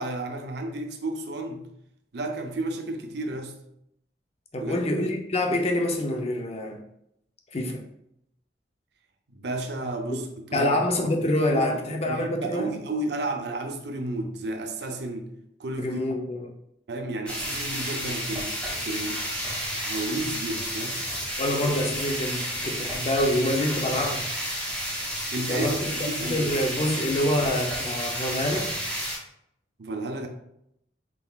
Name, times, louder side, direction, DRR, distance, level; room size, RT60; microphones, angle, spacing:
voice 1, 0.0-1.7 2.1-3.5 4.6-4.8 9.3-10.2 10.5-10.8 11.5-15.3 15.6-16.0 16.9-18.6 18.9-19.2 19.7-21.0 25.3-26.6 27.0-27.5 29.8-30.3, right 2 dB, 65° right, 0.6 m, -32 dB
voice 2, 4.5-6.8 7.5-7.8 10.5-12.8 15.8-16.5 21.4-24.3 25.5-28.7, left 1 dB, 35° left, 0.6 m, -26 dB
sound 1, 17.3-29.2, equal, 5° left, 1.1 m, -31 dB
4.4 x 3.8 x 2.3 m
head